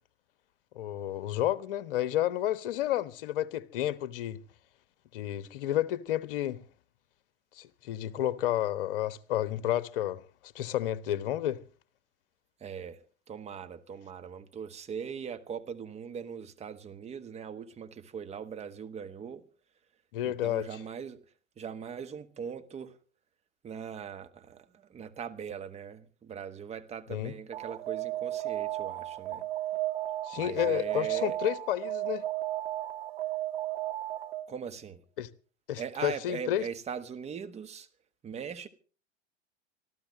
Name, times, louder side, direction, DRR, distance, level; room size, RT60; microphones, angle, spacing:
voice 1, 0.7-4.4 5.1-6.6 7.6-11.6 20.1-20.7 27.1-27.3 30.2-32.2 35.2-35.3 35.7-36.6, left 12 dB, 50° left, 1.1 m, -31 dB
voice 2, 12.6-13.0 13.3-19.4 20.2-21.2 21.6-23.0 23.6-29.4 30.3-31.4 34.5-35.0 35.8-37.9 38.2-38.7, right 7 dB, 20° right, 1.3 m, -40 dB
Alarm, 27.5-34.6, right 14 dB, 60° right, 1.8 m, -34 dB
25.0 x 14.5 x 3.1 m
figure-of-eight pair, 90°, 34 cm